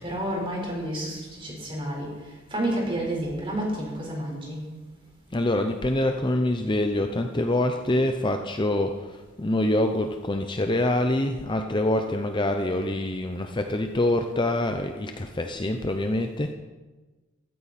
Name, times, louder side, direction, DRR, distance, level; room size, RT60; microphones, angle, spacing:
voice 1, 0.0-2.1 2.5-4.6, right 1 dB, 25° right, -1 dB, 4.4 m, -30 dB
voice 2, 5.3-16.5, left 1 dB, 20° left, 5 dB, 0.7 m, -25 dB
15.5 x 14.0 x 4.3 m, 1.2 s
head